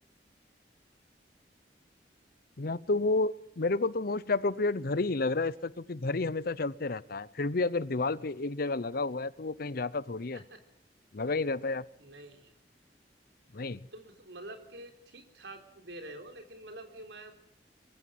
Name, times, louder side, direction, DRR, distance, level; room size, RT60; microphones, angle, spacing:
voice 1, 2.6-10.4 11.1-11.8 13.5-13.9, left 3 dB, 55° left, 19 dB, 0.8 m, -31 dB
voice 2, 12.0-12.5 13.9-17.3, right 1 dB, 80° right, 6 dB, 3.8 m, -47 dB
23.0 x 15.0 x 9.3 m, 0.80 s
head